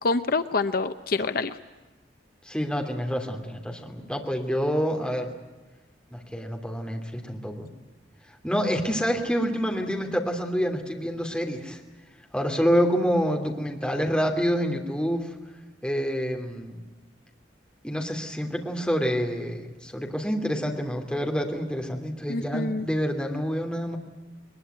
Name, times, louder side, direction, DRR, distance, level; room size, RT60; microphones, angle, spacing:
voice 1, 0.0-1.6 22.3-22.9, left 3 dB, 55° left, 10 dB, 0.8 m, -26 dB
voice 2, 2.5-5.3 6.1-7.7 8.4-11.8 12.3-15.3 15.8-16.8 17.8-24.0, equal, 5° left, 2 dB, 2.9 m, -27 dB
21.5 x 21.0 x 9.2 m, 1.2 s
head